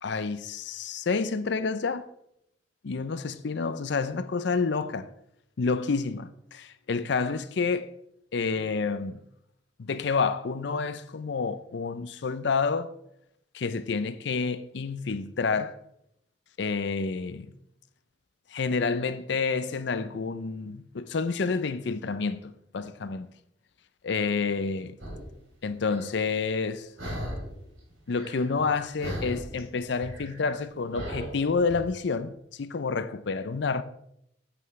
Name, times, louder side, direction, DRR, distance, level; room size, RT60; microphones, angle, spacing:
voice 1, 0.0-2.1 2.8-5.1 5.6-7.9 8.3-9.2 9.8-12.9 13.5-15.8 16.6-17.5 18.5-22.4 22.7-23.3 24.0-24.9 25.6-26.9 28.1-33.8, left 4 dB, 60° left, 0.5 m, -29 dB
sound 1, 25.0-25.3 25.9-26.1 27.0-27.6 27.9-28.7 29.0-31.8, equal, 85° right, 3.3 m, -37 dB
9.2 x 8.0 x 3.2 m
head